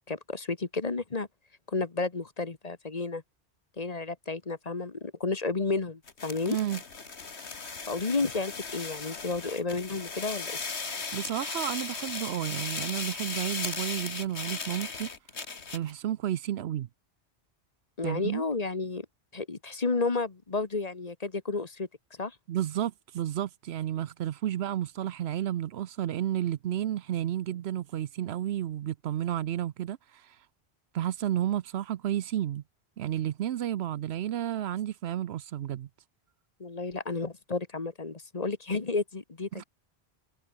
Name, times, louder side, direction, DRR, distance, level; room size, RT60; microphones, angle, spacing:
voice 1, 0.1-1.3 1.7-3.2 3.8-6.6 7.9-10.5 18.0-19.1 19.3-21.9 22.2-22.4 36.6-39.6, left 3 dB, 40° left, 1.3 m, -31 dB
sound 1, 6.1-15.9, left 4 dB, 80° left, 2.3 m, -37 dB
voice 2, 6.5-6.8 11.1-15.1 15.7-16.9 18.0-18.4 22.5-30.0 30.2-30.3 30.9-32.6 33.0-35.9 39.5-39.6, right 11 dB, 75° right, 0.9 m, -31 dB
omnidirectional pair, 1.1 m